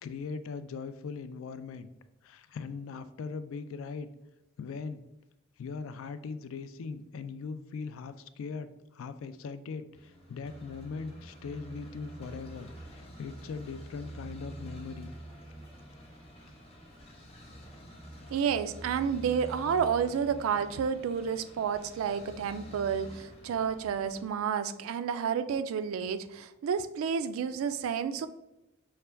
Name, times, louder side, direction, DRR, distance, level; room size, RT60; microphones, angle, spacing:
voice 1, 0.0-1.9 2.2-4.1 4.6-5.0 5.6-15.1, left 5 dB, 75° left, 12 dB, 0.3 m, -40 dB
sound 1, 9.9-24.3, right 1 dB, 30° left, 1.0 m, -47 dB
voice 2, 18.3-28.3, right 7 dB, 80° right, 13 dB, 0.3 m, -30 dB
5.5 x 2.2 x 3.3 m, 0.93 s
head